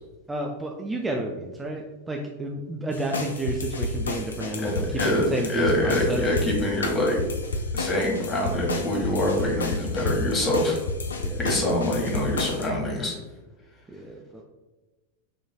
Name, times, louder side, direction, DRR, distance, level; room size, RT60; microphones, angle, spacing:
voice 1, 0.3-6.2 7.9-8.0 11.1-11.4 13.9-14.4, right 1 dB, 10° right, 1 dB, 0.4 m, -31 dB
sound 1, 2.9-12.7, left 3 dB, 70° left, 0.5 m, -31 dB
voice 2, 4.6-7.2 7.7-10.8 11.4-13.1, left 1 dB, 25° left, -1 dB, 1.4 m, -25 dB
6.2 x 3.1 x 2.3 m, 1.2 s
figure-of-eight pair, 90°, 0 cm